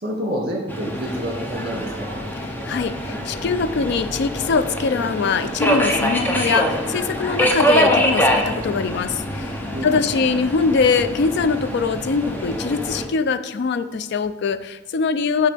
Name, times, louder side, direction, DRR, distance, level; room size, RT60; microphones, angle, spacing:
voice 1, 0.0-2.2 9.7-10.2, equal, 50° right, 0 dB, 1.8 m, -28 dB
Subway metro underground, 0.7-13.1, equal, 10° left, 0.7 m, -24 dB
voice 2, 2.6-15.5, left 5 dB, 55° left, 13 dB, 0.3 m, -22 dB
8.2 x 6.0 x 3.4 m, 1.1 s
head